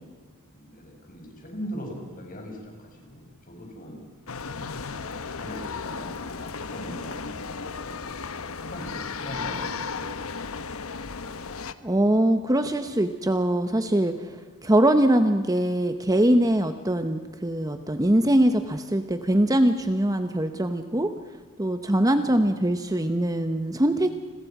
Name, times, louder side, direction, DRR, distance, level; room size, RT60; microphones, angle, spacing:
voice 1, 0.5-4.1 4.8-10.3 22.0-22.3, equal, 40° left, 1 dB, 6.7 m, -40 dB
sound 1, 4.3-11.7, left 5 dB, 65° left, 1.1 m, -35 dB
voice 2, 11.8-14.3 14.6-21.1 21.6-24.1, right 1 dB, 15° right, 8 dB, 0.9 m, -22 dB
30.0 x 22.0 x 6.1 m, 1.5 s
head